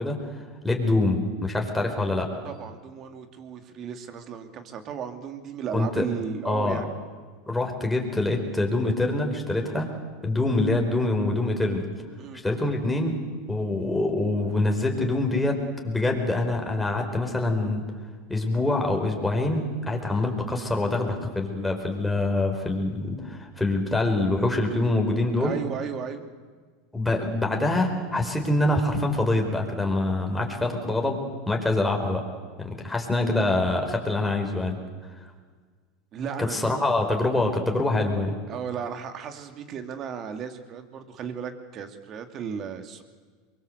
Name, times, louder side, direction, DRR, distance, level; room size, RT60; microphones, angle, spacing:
voice 1, 0.0-2.3 5.7-6.0 6.4-6.8 7.5-9.9 10.2-11.8 12.4-13.2 13.5-15.6 15.8-17.8 18.3-25.6 26.9-32.2 32.8-34.8 36.5-38.4, left 2 dB, 5° left, 2 dB, 4.8 m, -25 dB
voice 2, 2.4-6.9 12.2-12.4 20.1-20.2 25.4-26.2 36.1-36.8 38.5-43.0, right 7 dB, 40° right, 8 dB, 2.7 m, -35 dB
23.5 x 23.0 x 8.1 m, 1.5 s
supercardioid pair, 115°, 0 cm